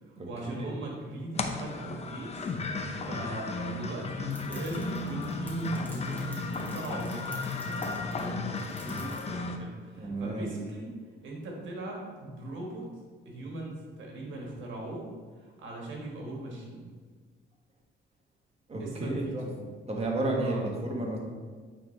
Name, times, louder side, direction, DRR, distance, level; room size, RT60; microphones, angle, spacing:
voice 1, 0.0-10.9 11.2-12.9 13.2-15.1 15.4-16.9 18.8-19.6 20.4-20.7, right 2 dB, 75° right, -1 dB, 1.5 m, -39 dB
sound 1, 1.3-9.6, left 3 dB, 30° left, 0.6 m, -34 dB
sound 2, 4.3-9.3, left 1 dB, 10° left, 1.6 m, -51 dB
voice 2, 10.0-10.5 18.7-19.4 19.9-21.2, right 2 dB, 30° right, -1 dB, 1.4 m, -31 dB
8.5 x 3.6 x 3.2 m, 1.5 s
cardioid pair, 90°, 20 cm